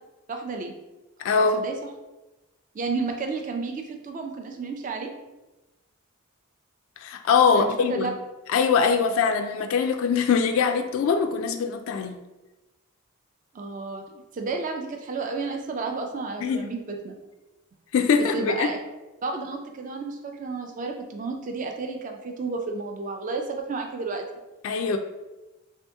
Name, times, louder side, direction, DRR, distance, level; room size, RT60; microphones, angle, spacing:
voice 1, 0.3-0.7 1.5-1.7 2.7-5.1 7.5-8.1 13.5-14.0 14.3-17.2 18.3-18.8 19.2-24.3, right 4 dB, 40° right, 3 dB, 0.4 m, -31 dB
voice 2, 1.2-1.7 7.0-8.1 8.5-12.2 16.4-16.7 17.9-18.7 24.6-25.0, left 5 dB, 75° left, 5 dB, 0.3 m, -22 dB
3.4 x 2.7 x 3.4 m, 1.1 s
head